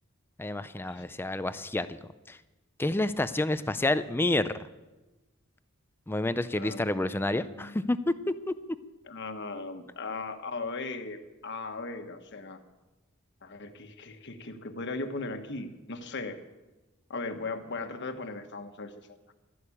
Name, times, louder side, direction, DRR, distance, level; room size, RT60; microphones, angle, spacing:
voice 1, 0.4-2.0 2.3-2.4 2.8-4.6 6.1-8.1 8.5-8.6, left 2 dB, 10° left, 13 dB, 0.4 m, -29 dB
voice 2, 6.6-7.8 9.0-12.6 13.4-16.4 17.1-19.1, left 3 dB, 55° left, 7 dB, 1.3 m, -38 dB
12.5 x 11.0 x 8.5 m, 1.1 s
head